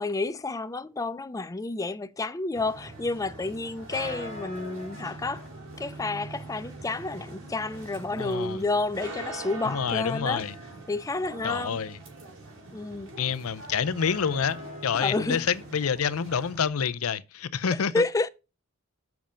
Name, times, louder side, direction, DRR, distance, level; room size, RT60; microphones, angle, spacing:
voice 1, 0.0-5.5 5.8-10.4 10.9-11.8 12.7-13.1 14.9-15.5 17.7-18.3, left 3 dB, 15° left, 0.4 m, -30 dB
sound 1, 2.5-16.7, right 1 dB, 65° right, 4.4 m, -42 dB
voice 2, 8.2-8.6 9.6-10.5 11.4-12.0 13.1-14.6 14.8-18.0, left 7 dB, 90° left, 0.6 m, -28 dB
7.4 x 5.8 x 5.1 m
head